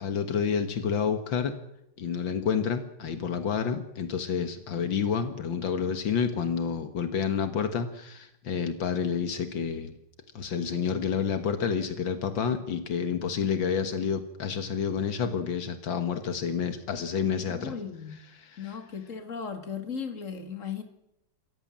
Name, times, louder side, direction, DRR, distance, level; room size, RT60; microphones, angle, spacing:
voice 1, 0.0-1.6 2.0-9.9 10.3-17.8 18.1-18.8, left 7 dB, 80° left, 9 dB, 2.2 m, -29 dB
voice 2, 17.5-18.1 18.6-20.8, left 6 dB, 40° left, 7 dB, 2.7 m, -37 dB
27.5 x 14.5 x 7.5 m, 0.82 s
omnidirectional pair, 2.1 m